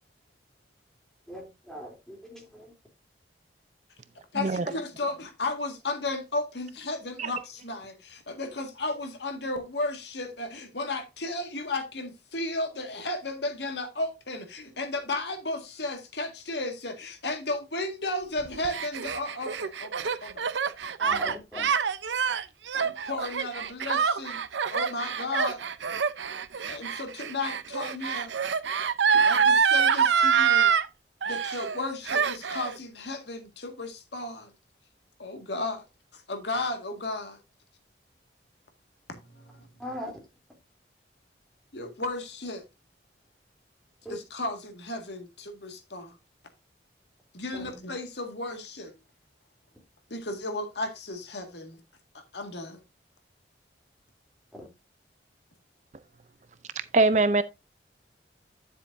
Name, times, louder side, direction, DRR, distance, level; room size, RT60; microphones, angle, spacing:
voice 1, 1.3-2.7 21.0-21.7 39.8-40.2 44.0-44.1 47.5-47.8 54.6-54.7, left 1 dB, 5° left, 3.1 m, -40 dB
voice 2, 4.3-20.5 22.7-24.4 24.7-25.6 26.7-28.3 28.7-28.8 29.1-30.7 31.3-34.5 35.2-35.8 36.1-37.4 39.3-39.7 41.7-42.6 44.1-46.2 47.3-48.9 50.1-51.8 52.1-52.8, left 2 dB, 70° left, 1.8 m, -34 dB
Gasp, 18.4-30.9 31.2-31.8 32.1-32.7, right 6 dB, 90° right, 0.7 m, -26 dB
voice 3, 56.9-57.4, right 3 dB, 40° right, 0.5 m, -22 dB
10.0 x 7.5 x 2.6 m
head